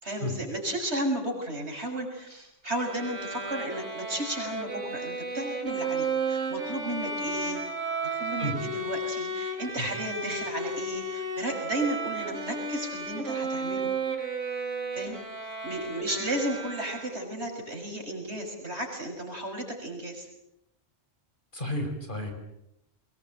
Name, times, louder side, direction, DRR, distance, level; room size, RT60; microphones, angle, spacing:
voice 1, 0.0-7.6 8.1-13.9 14.9-15.2 15.6-20.3, right 1 dB, 60° right, 3 dB, 6.8 m, -34 dB
Bowed string instrument, 2.7-17.4, right 3 dB, 80° right, 3.9 m, -33 dB
voice 2, 21.5-22.3, left 1 dB, 40° left, 4 dB, 5.4 m, -31 dB
24.0 x 21.5 x 9.1 m, 0.82 s
omnidirectional pair, 1.2 m